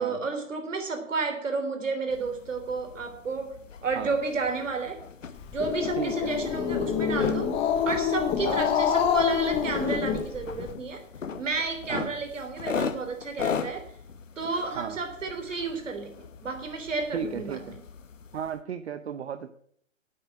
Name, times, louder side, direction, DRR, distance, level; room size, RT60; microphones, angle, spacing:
voice 1, 0.0-3.6 3.8-5.0 5.5-7.5 7.9-11.0 11.4-13.9 14.4-17.6, right 4 dB, 75° right, 6 dB, 3.4 m, -31 dB
sound 1, 2.1-18.6, left 6 dB, 75° left, 1.3 m, -39 dB
Growling, 5.4-10.7, left 7 dB, 15° left, 0.8 m, -26 dB
voice 2, 6.0-6.3 8.5-8.7 11.9-12.1 14.8-15.0 17.1-17.8 18.3-19.5, right 7 dB, 55° right, 10 dB, 0.9 m, -34 dB
10.0 x 8.5 x 7.7 m, 0.64 s
hypercardioid pair, 135°, 38 cm